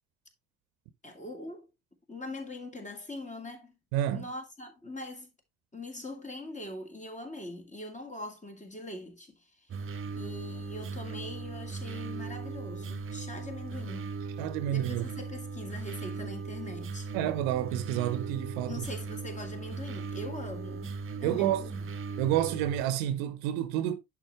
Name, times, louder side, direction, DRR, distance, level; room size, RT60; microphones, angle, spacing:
voice 1, 1.0-1.7 2.1-3.7 4.1-5.3 5.7-9.7 10.2-14.1 14.6-17.1 18.7-21.9, left 2 dB, 20° left, 2.2 m, -42 dB
voice 2, 3.9-4.3 14.4-15.1 17.1-18.8 21.2-21.6 22.2-24.0, right 12 dB, 65° right, 1.0 m, -29 dB
sound 1, 9.7-22.8, right 4 dB, 30° right, 0.9 m, -38 dB
10.5 x 4.3 x 3.2 m
figure-of-eight pair, 50°, 40 cm